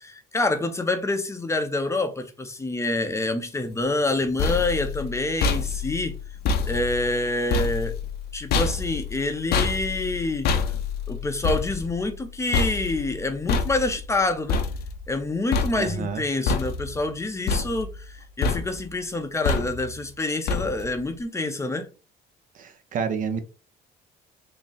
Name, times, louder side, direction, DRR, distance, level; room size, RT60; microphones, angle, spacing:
voice 1, 0.0-6.2 6.7-7.9 8.3-10.5 11.1-14.6 15.1-21.9, left 2 dB, 15° left, 0.6 m, -27 dB
sound 1, 4.0-15.2 15.5-16.1 16.5-17.1 17.5-18.2 18.4-18.9 19.4-20.0 20.5-21.0, left 5 dB, 70° left, 0.6 m, -27 dB
voice 2, 15.8-16.2 22.6-23.4, right 6 dB, 50° right, 0.6 m, -29 dB
3.6 x 2.0 x 3.9 m
cardioid pair, 110°, 17 cm